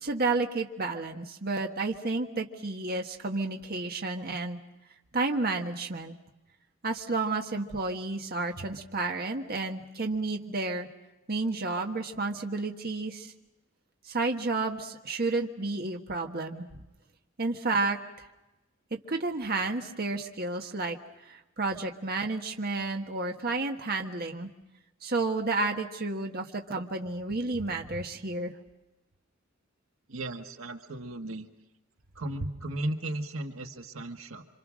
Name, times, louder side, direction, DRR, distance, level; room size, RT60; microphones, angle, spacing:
voice 1, 0.0-4.6 5.1-6.1 6.8-10.9 11.3-13.3 14.1-16.8 17.4-18.3 19.1-21.0 21.2-24.5 25.0-28.5, right 3 dB, 50° right, 3 dB, 1.5 m, -31 dB
voice 2, 30.1-31.5 32.1-34.4, right 1 dB, 85° right, 5 dB, 1.7 m, -35 dB
27.5 x 26.0 x 6.4 m, 1.0 s
head